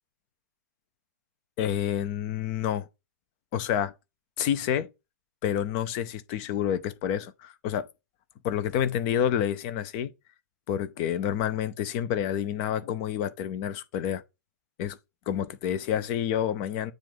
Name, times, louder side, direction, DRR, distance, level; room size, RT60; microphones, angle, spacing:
voice 1, 1.6-2.9 3.5-3.9 4.4-4.9 5.4-7.9 8.4-10.1 10.7-14.2 14.8-15.0 15.3-16.9, left 9 dB, 35° left, 0.6 m, -28 dB
7.3 x 2.5 x 5.4 m
figure-of-eight pair, 115°, 10 cm